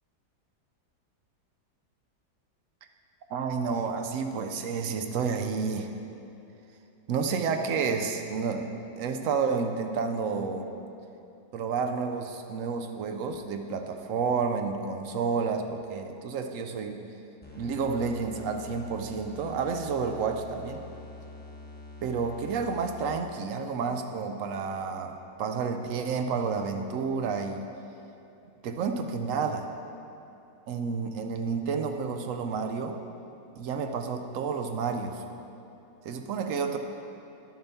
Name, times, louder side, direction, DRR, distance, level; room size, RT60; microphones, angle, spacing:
voice 1, 3.3-5.9 7.1-8.7 9.0-10.7 11.5-17.1 17.5-20.8 22.0-27.7 28.6-29.7 30.7-33.0 33.6-35.2 36.0-36.8, right 5 dB, 70° right, 6 dB, 0.8 m, -30 dB
sound 1, 17.4-23.3, left 2 dB, 10° left, 0.7 m, -46 dB
10.5 x 6.7 x 4.2 m, 2.8 s
omnidirectional pair, 1.8 m